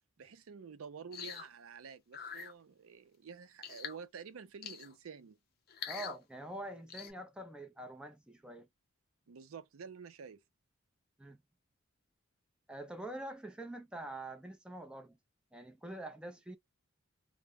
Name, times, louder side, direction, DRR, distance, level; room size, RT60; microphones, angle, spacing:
voice 1, 0.2-5.4 9.3-10.4, right 6 dB, 90° right, 0.5 m, -49 dB
sound 1, 1.1-1.5 2.1-2.5 3.6-4.0 4.6-4.9 5.7-6.2 6.9-7.1, left 7 dB, 45° left, 0.5 m, -44 dB
voice 2, 5.9-8.7 11.2-11.4 12.7-15.2 15.5-16.6, right 1 dB, 5° right, 0.5 m, -45 dB
2.2 x 2.0 x 3.4 m
head